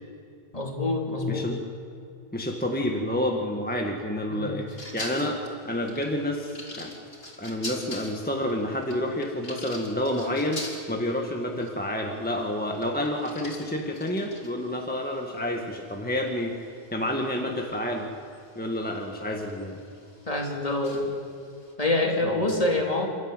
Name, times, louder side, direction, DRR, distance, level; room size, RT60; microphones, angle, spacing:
voice 1, 0.5-1.5 4.3-4.5 20.3-21.1 21.8-23.1, left 2 dB, 30° left, 1 dB, 3.0 m, -26 dB
voice 2, 1.3-1.6 2.3-5.4 5.6-6.9 7.4-10.6 10.9-18.1 18.6-19.8 22.3-22.4, left 1 dB, 10° left, 1 dB, 1.6 m, -29 dB
sound 1, 4.7-21.7, left 1 dB, 55° left, 3.6 m, -45 dB
28.5 x 13.5 x 9.0 m, 2.7 s
omnidirectional pair, 1.2 m